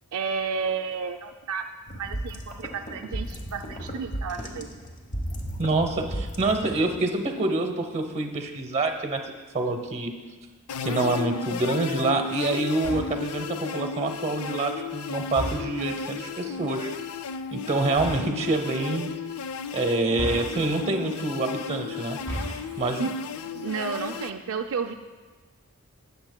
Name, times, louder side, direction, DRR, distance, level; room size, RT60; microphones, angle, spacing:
voice 1, 0.1-4.7 22.5-22.6 23.0-23.2 23.5-24.9, right 5 dB, 65° right, 6 dB, 0.4 m, -32 dB
sound 1, 1.9-7.0, equal, 35° left, 1.0 m, -35 dB
voice 2, 5.6-9.2 9.5-10.1 10.8-16.9 17.5-19.1 19.7-22.2 22.8-23.1, right 2 dB, 30° right, 5 dB, 0.9 m, -26 dB
sound 2, 10.7-24.3, left 6 dB, 85° left, 0.4 m, -34 dB
sound 3, 12.8-13.3 15.3-15.9 17.9-18.4 20.1-20.9 22.1-22.8, right 1 dB, 15° left, 3.3 m, -35 dB
19.0 x 7.0 x 2.2 m, 1.3 s
head